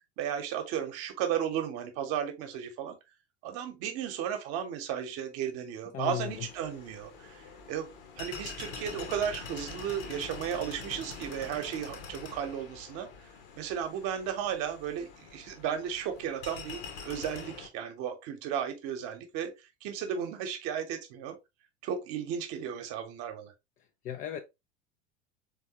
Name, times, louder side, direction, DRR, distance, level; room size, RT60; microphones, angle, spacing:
voice 1, 0.2-3.0 3.4-7.4 7.7-7.9 8.2-13.1 13.6-19.5 19.8-21.4 21.8-23.5, right 9 dB, 45° right, 1.0 m, -34 dB
voice 2, 5.9-6.5 24.0-24.4, left 11 dB, 25° left, 0.3 m, -35 dB
sound 1, 6.0-17.7, left 5 dB, 55° left, 1.0 m, -45 dB
3.7 x 3.6 x 2.8 m
figure-of-eight pair, 75°, 34 cm